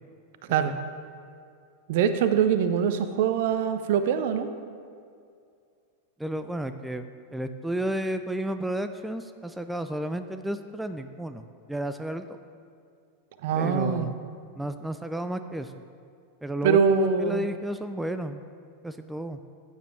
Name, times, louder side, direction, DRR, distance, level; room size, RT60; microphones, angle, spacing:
voice 1, 1.9-4.5 13.4-14.1 16.6-17.5, right 7 dB, 50° right, 10 dB, 0.7 m, -23 dB
voice 2, 6.2-7.0 7.3-12.3 13.5-14.2 14.6-15.7 16.4-18.4 18.8-19.4, right 1 dB, 5° right, 9 dB, 0.4 m, -32 dB
15.0 x 9.1 x 3.2 m, 2.3 s
figure-of-eight pair, 90°, 0 cm